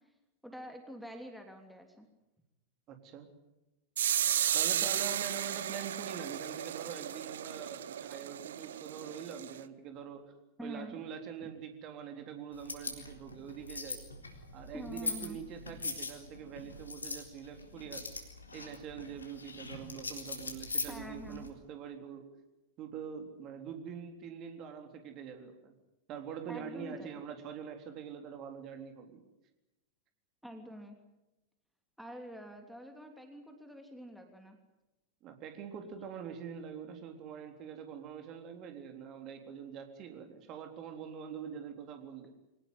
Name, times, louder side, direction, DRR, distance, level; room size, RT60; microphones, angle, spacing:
voice 1, 0.4-2.1 10.6-11.0 11.4-11.5 14.7-15.4 20.9-21.5 26.5-27.2 30.4-31.0 32.0-34.6, equal, ahead, 4 dB, 3.1 m, -46 dB
voice 2, 2.9-3.3 4.5-10.3 10.6-14.0 14.5-18.1 18.5-22.3 22.8-25.7 26.1-29.2 35.2-42.3, right 7 dB, 35° right, 5 dB, 3.6 m, -44 dB
sound 1, 4.0-9.6, right 10 dB, 60° right, 0.8 m, -34 dB
sound 2, 12.5-21.5, left 3 dB, 75° left, 3.8 m, -42 dB
24.5 x 18.5 x 9.7 m, 0.96 s
figure-of-eight pair, 90°, 0 cm